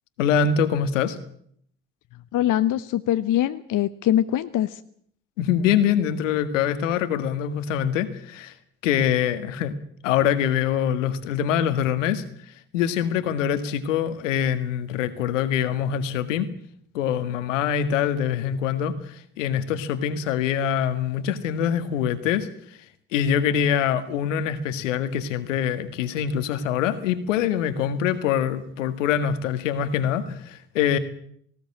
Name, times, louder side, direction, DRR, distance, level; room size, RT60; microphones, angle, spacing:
voice 1, 0.2-1.2 5.4-8.5 8.8-9.7 10.0-12.2 12.7-16.5 16.9-22.5 23.1-31.0, left 8 dB, 80° left, 11 dB, 1.8 m, -24 dB
voice 2, 2.3-4.8, left 12 dB, 55° left, 12 dB, 1.0 m, -23 dB
19.0 x 18.0 x 8.7 m, 0.65 s
hypercardioid pair, 50°, 37 cm